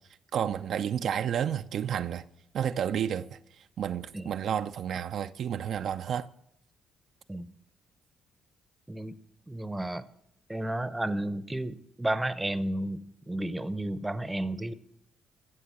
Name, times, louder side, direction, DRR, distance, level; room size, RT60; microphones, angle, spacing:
voice 1, 0.3-2.2 2.5-6.3, right 9 dB, 65° right, 0.5 m, -31 dB
voice 2, 9.5-10.1 10.5-14.7, right 1 dB, 10° right, 0.8 m, -32 dB
15.0 x 6.9 x 7.8 m
cardioid pair, 90°, 0 cm